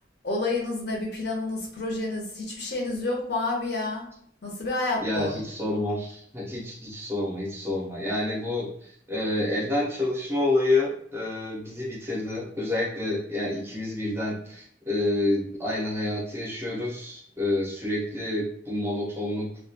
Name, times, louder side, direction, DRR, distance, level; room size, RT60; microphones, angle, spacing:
voice 1, 0.2-4.1 4.4-5.4, left 2 dB, 60° left, -1 dB, 0.7 m, -29 dB
voice 2, 5.0-19.5, left 2 dB, 15° right, -3 dB, 0.5 m, -28 dB
2.3 x 2.2 x 2.6 m, 0.64 s
head